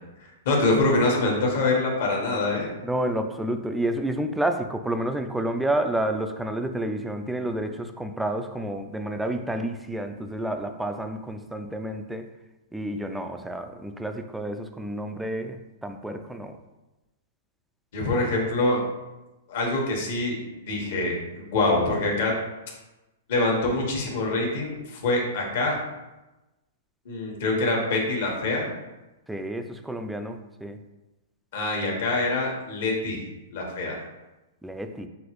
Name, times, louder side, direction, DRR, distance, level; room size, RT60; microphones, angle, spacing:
voice 1, 0.4-2.7 17.9-18.8 19.5-22.3 23.3-25.8 27.0-28.7 31.5-33.2 33.5-34.0, left 2 dB, 60° left, -1 dB, 1.3 m, -25 dB
voice 2, 2.8-12.3 12.7-16.6 29.3-30.8 34.6-35.1, right 1 dB, 5° right, 6 dB, 0.3 m, -30 dB
5.9 x 2.4 x 3.1 m, 1.0 s
hypercardioid pair, 140°, 0 cm